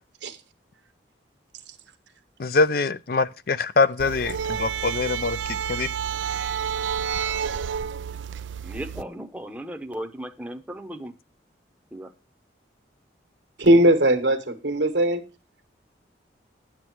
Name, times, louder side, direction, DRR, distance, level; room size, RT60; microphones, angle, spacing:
voice 1, 2.4-5.4 5.7-5.9, left 3 dB, 50° left, 0.5 m, -23 dB
sound 1, 4.0-9.0, right 7 dB, 90° right, 0.4 m, -29 dB
voice 2, 8.6-11.1 11.9-12.1, equal, 10° right, 0.8 m, -36 dB
voice 3, 13.6-15.2, right 1 dB, 70° right, 1.4 m, -19 dB
9.6 x 8.3 x 4.5 m
head